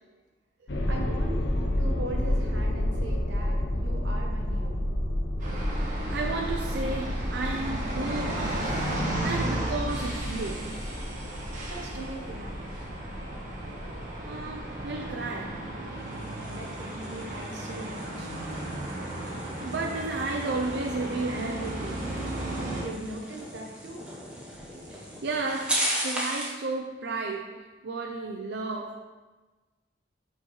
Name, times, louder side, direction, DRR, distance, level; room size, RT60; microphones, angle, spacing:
sound 1, 0.7-15.8, left 1 dB, 75° left, 0.8 m, -31 dB
voice 1, 0.9-1.4 1.8-4.7 11.7-12.6 16.5-18.3 22.8-24.1, right 1 dB, 80° right, 0 dB, 1.1 m, -40 dB
sound 2, 5.4-22.8, right 1 dB, 45° right, 1.3 m, -34 dB
voice 2, 5.7-10.7 14.2-15.7 18.9-22.0 24.9-29.0, right 3 dB, 65° right, 1 dB, 0.5 m, -33 dB
sound 3, 15.9-26.6, equal, 5° right, 1.0 m, -37 dB
7.9 x 4.3 x 3.1 m, 1.3 s
head